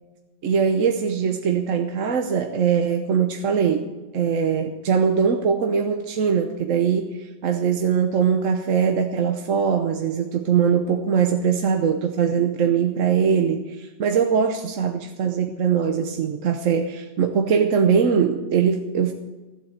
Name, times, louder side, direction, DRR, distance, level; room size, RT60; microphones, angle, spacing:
voice 1, 0.4-3.8 4.1-19.1, right 7 dB, 50° right, 4 dB, 1.1 m, -21 dB
15.0 x 8.1 x 7.9 m, 1.2 s
omnidirectional pair, 2.0 m